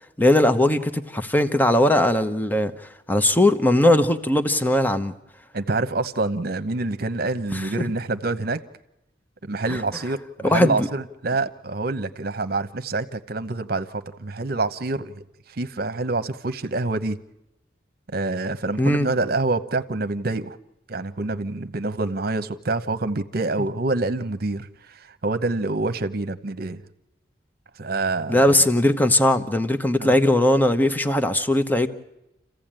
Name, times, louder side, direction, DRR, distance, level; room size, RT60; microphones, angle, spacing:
voice 1, 0.2-5.1 7.5-7.7 9.7-9.8 10.4-10.9 18.8-19.1 28.3-31.9, left 1 dB, 10° left, 0.9 m, -19 dB
voice 2, 5.5-8.6 9.4-17.2 18.1-20.6 20.9-26.8 27.8-28.6 30.0-30.2, right 2 dB, 60° right, 1.0 m, -27 dB
28.0 x 15.5 x 8.9 m
head